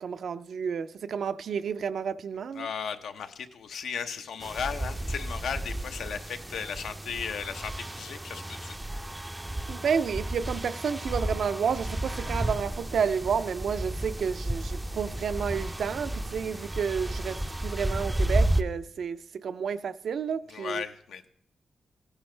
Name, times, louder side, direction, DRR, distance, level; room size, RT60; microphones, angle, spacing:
voice 1, 0.0-2.7 9.7-20.8, right 6 dB, 70° right, 0.5 m, -31 dB
voice 2, 2.5-8.8 20.5-21.3, left 7 dB, 85° left, 0.9 m, -36 dB
sound 1, 4.4-18.6, right 1 dB, 10° right, 0.4 m, -32 dB
15.5 x 9.7 x 3.3 m
wide cardioid pair, 130°, 0 cm